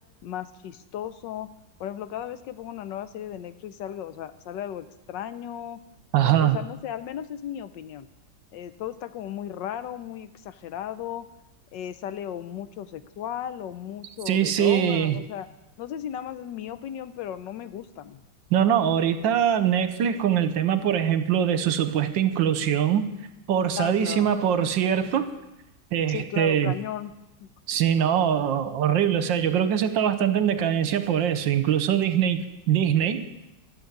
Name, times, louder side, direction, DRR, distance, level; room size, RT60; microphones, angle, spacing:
voice 1, 0.2-1.5 1.8-5.8 6.2-8.1 8.5-11.3 11.7-15.5 15.8-18.2 23.8-24.3 26.1-27.1 27.4-27.5 27.9-28.2, left 10 dB, 75° left, 13 dB, 1.3 m, -35 dB
voice 2, 6.1-6.6 14.3-15.2 18.5-23.1 23.5-25.3 25.9-26.7 27.7-33.3, right 9 dB, 75° right, 11 dB, 1.5 m, -23 dB
14.0 x 7.0 x 9.2 m, 0.93 s
omnidirectional pair, 2.1 m